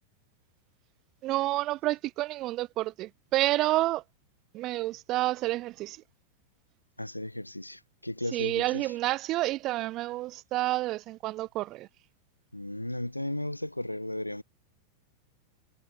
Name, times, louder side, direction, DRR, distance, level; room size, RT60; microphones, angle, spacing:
voice 1, 1.2-4.0 4.5-6.0 8.3-11.9, right 17 dB, 35° right, 0.5 m, -29 dB
voice 2, 7.0-8.8 12.5-14.4, left 1 dB, 85° left, 0.6 m, -35 dB
figure-of-eight pair, 90°, 0 cm